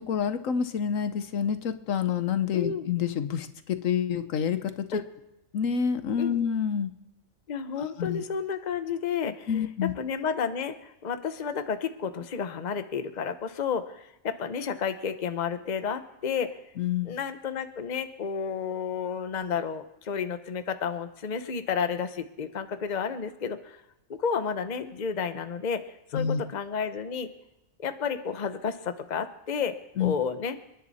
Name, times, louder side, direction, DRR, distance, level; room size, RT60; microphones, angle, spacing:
voice 1, 0.0-5.0 5.5-6.9 7.8-8.2 9.5-9.9 16.8-17.2 26.1-26.4 30.0-30.1, left 8 dB, 75° left, 10 dB, 1.2 m, -28 dB
voice 2, 2.5-2.9 4.9-5.0 6.2-6.4 7.5-9.5 10.0-16.5 17.0-23.8 24.1-25.8 26.1-27.3 27.8-30.6, left 6 dB, 40° left, 9 dB, 0.9 m, -31 dB
29.5 x 10.5 x 4.1 m, 0.89 s
omnidirectional pair, 1.4 m